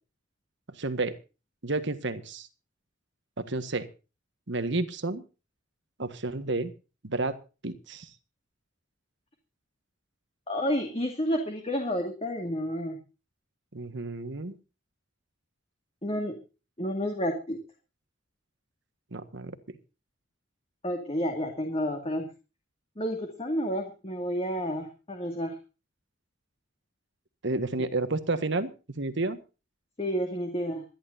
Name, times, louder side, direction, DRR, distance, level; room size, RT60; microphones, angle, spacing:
voice 1, 0.8-1.1 1.6-2.5 3.4-3.9 4.5-5.2 6.0-6.7 7.0-7.4 7.6-8.1 13.7-14.5 19.1-19.8 27.4-28.7 29.0-29.4, right 2 dB, 65° right, 11 dB, 1.6 m, -31 dB
voice 2, 10.5-13.0 16.0-16.4 16.8-17.6 20.8-22.3 23.0-25.6 30.0-30.8, equal, 30° left, 3 dB, 2.3 m, -30 dB
26.5 x 11.5 x 2.7 m, 0.33 s
head